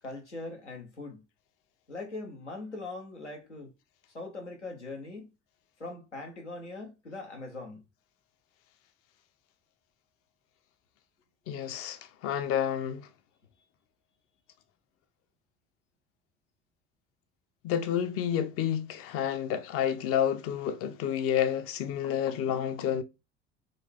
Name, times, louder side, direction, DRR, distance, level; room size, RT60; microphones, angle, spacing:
voice 1, 0.0-1.2 1.9-3.7 4.1-5.3 5.8-7.8, left 2 dB, 90° left, 0.8 m, -41 dB
voice 2, 11.5-13.1 17.6-23.0, left 9 dB, 40° left, 0.5 m, -30 dB
3.8 x 2.3 x 3.5 m
figure-of-eight pair, 60°, 35 cm